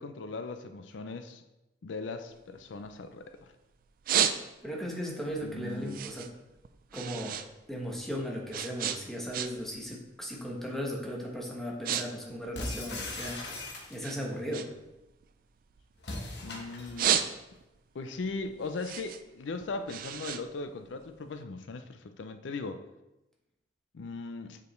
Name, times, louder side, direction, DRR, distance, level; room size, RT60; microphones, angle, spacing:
voice 1, 0.0-1.4 1.8-3.3 5.4-6.0 16.4-17.2 17.9-22.8 23.9-24.6, left 3 dB, 90° left, 9 dB, 0.5 m, -38 dB
sound 1, 2.3-3.4 3.8-4.9 5.3-7.5 7.8-9.8 10.1-10.4 11.0-11.2 11.5-12.1 12.3-13.6 14.0-16.3 16.7-17.8 18.2-21.3, right 9 dB, 50° right, 0.4 m, -32 dB
voice 2, 4.6-6.3 6.9-7.4 7.7-13.6 13.9-14.7, equal, ahead, -2 dB, 1.0 m, -37 dB
sound 2, 12.5-14.3 16.0-17.1, left 2 dB, 65° left, 1.1 m, -39 dB
6.9 x 5.0 x 3.1 m, 0.96 s
head